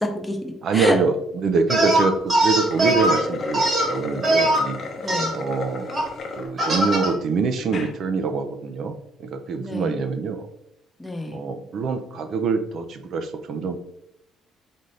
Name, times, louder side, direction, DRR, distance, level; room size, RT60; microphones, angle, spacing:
voice 1, 0.0-1.0 5.0-5.4 9.6-10.0 11.0-11.4, left 1 dB, 10° left, 4 dB, 0.7 m, -27 dB
voice 2, 0.6-4.8 5.3-6.0 6.4-10.5 11.3-13.8, right 4 dB, 55° right, 8 dB, 0.6 m, -25 dB
sound 1, 1.7-3.2 3.5-4.6 5.1-5.3 5.9-6.0 6.6-7.1, right 1 dB, 35° right, 1.5 m, -20 dB
sound 2, 2.5-6.5 7.0-7.1 7.6-7.9, left 3 dB, 45° left, 0.8 m, -33 dB
4.2 x 3.7 x 3.2 m, 0.79 s
cardioid pair, 125°, 0 cm